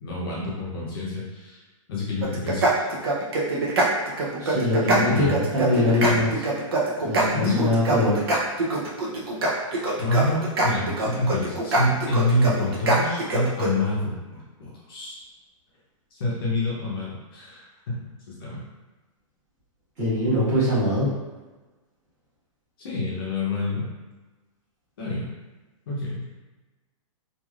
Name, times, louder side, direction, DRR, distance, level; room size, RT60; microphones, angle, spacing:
voice 1, 0.0-1.6 1.9-2.9 4.9-5.6 5.9-6.4 7.3-7.8 10.0-15.2 16.1-18.0 18.3-18.6 22.8-23.9 25.0-25.3 25.9-26.2, left 2 dB, 45° left, -6 dB, 0.7 m, -27 dB
sound 1, 2.2-13.7, right 2 dB, 45° right, 0.6 m, -24 dB
voice 2, 4.4-6.3 7.0-8.3 20.0-21.1, left 1 dB, 20° right, -12 dB, 1.2 m, -23 dB
3.2 x 2.5 x 2.3 m, 1.2 s
hypercardioid pair, 180°, 17 cm